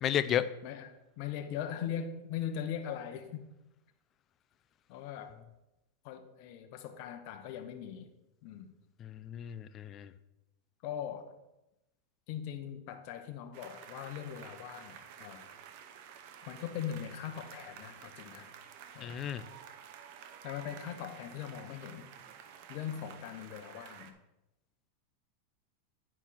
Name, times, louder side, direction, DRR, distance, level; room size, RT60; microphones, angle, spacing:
voice 1, 0.0-0.5 9.0-10.1 19.0-19.4, left 10 dB, 30° left, 12 dB, 0.5 m, -33 dB
voice 2, 0.6-3.5 4.9-5.4 6.0-8.1 8.4-8.7 10.8-11.4 12.3-15.5 16.5-18.5 18.9-19.2 20.4-22.1 22.7-24.1, left 9 dB, 55° left, 6 dB, 1.1 m, -40 dB
sound 1, 13.5-24.1, right 8 dB, 55° right, 0.9 m, -51 dB
9.8 x 4.5 x 5.9 m, 0.95 s
supercardioid pair, 135°, 0 cm